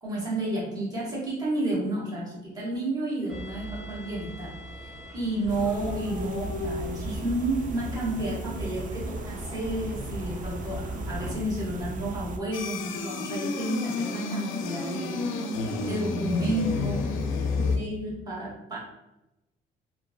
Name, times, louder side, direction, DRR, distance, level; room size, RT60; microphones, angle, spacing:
voice 1, 0.0-15.3 15.9-17.1 17.6-18.8, right 1 dB, 20° right, -6 dB, 1.3 m, -31 dB
sound 1, 3.3-11.4, left 1 dB, ahead, 0.9 m, -41 dB
sound 2, 5.5-12.4, right 2 dB, 40° right, 0.4 m, -36 dB
sound 3, 12.5-17.8, left 3 dB, 85° left, 0.4 m, -30 dB
3.0 x 2.5 x 2.3 m, 0.94 s
cardioid pair, 90°, 20 cm